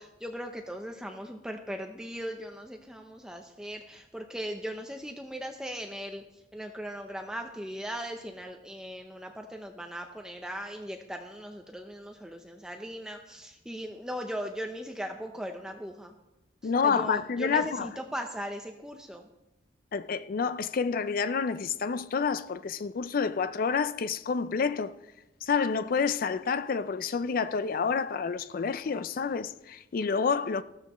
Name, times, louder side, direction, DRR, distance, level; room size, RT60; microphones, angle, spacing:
voice 1, 0.0-16.1 16.6-19.2, equal, 5° right, 0.6 m, -38 dB
voice 2, 16.6-17.9 19.9-24.9 25.4-30.6, left 5 dB, 50° left, 0.4 m, -28 dB
14.5 x 13.0 x 3.0 m
head